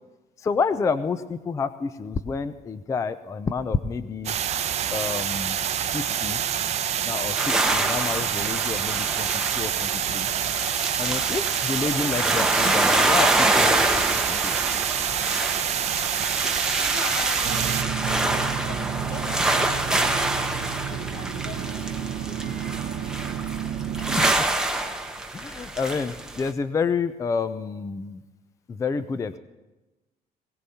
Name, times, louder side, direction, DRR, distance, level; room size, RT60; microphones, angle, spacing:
voice 1, 0.4-4.4 4.9-5.6 5.9-6.4 7.0-9.3 9.5-10.3 11.0-14.8 24.0-24.3 25.3-28.2 28.7-29.4, left 5 dB, 20° left, 13 dB, 0.4 m, -29 dB
sound 1, 4.2-17.8, right 9 dB, 40° right, 0.6 m, -27 dB
sound 2, 7.4-26.5, right 2 dB, 5° right, 0.8 m, -26 dB
voice 2, 16.7-19.9 20.2-22.7, left 2 dB, 85° left, -1 dB, 5.2 m, -40 dB
sound 3, 17.4-24.3, right 9 dB, 80° right, 0.7 m, -31 dB
21.0 x 17.0 x 2.8 m, 1.1 s
cardioid pair, 165°, 17 cm